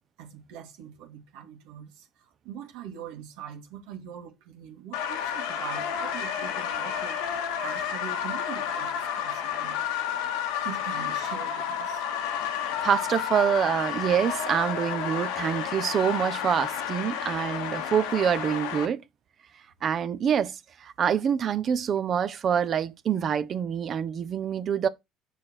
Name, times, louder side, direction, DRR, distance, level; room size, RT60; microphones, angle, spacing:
voice 1, 0.2-7.2 7.6-9.8 10.6-12.0, right 9 dB, 85° right, 1.9 m, -42 dB
sound 1, 4.9-18.8, left 8 dB, 90° left, 1.4 m, -31 dB
voice 2, 12.8-19.0 19.8-24.9, right 8 dB, 45° right, 0.8 m, -26 dB
6.7 x 5.0 x 4.4 m
supercardioid pair, 100°, 0 cm